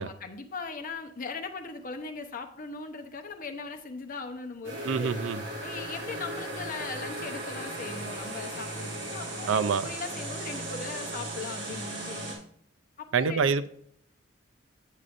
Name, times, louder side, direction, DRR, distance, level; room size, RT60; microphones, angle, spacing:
voice 1, 0.0-5.3 5.6-12.4 13.0-13.5, left 4 dB, 45° left, 0.8 m, -39 dB
sound 1, 4.6-12.4, right 1 dB, 65° right, 2.4 m, -37 dB
voice 2, 4.8-5.4 9.5-9.9 13.1-13.7, right 5 dB, 85° right, 0.5 m, -26 dB
8.2 x 7.4 x 2.6 m
head